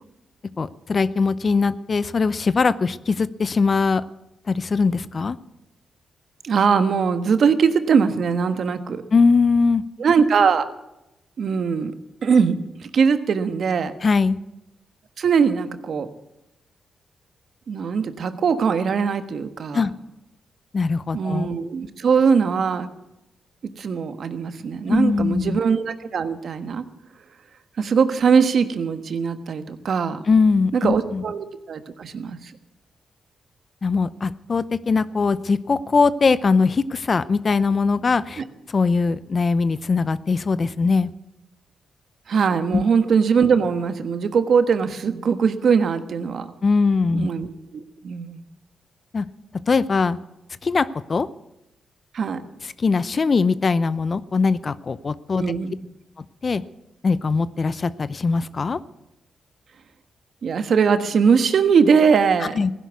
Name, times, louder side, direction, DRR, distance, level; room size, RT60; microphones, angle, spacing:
voice 1, 0.6-4.0 4.5-5.4 9.1-9.8 14.0-14.4 19.7-19.9 20.7-21.5 24.9-25.6 30.3-31.2 33.8-38.4 38.7-41.1 42.7-42.8 46.6-47.3 49.1-49.3 49.7-50.2 50.6-51.3 52.6-55.5 56.4-56.6 57.0-58.8 62.4-62.7, left 4 dB, 45° left, 17 dB, 0.6 m, -21 dB
voice 2, 6.4-9.0 10.0-10.7 11.4-11.9 12.2-12.5 12.8-13.9 15.2-16.1 17.7-19.8 21.1-22.9 23.8-26.8 27.8-30.2 30.7-32.5 38.4-38.5 42.3-46.5 47.1-48.4 52.1-52.4 55.4-55.8 60.4-62.6, right 6 dB, 65° right, 10 dB, 1.3 m, -21 dB
16.0 x 11.0 x 8.2 m, 0.91 s
cardioid pair, 70°, 0 cm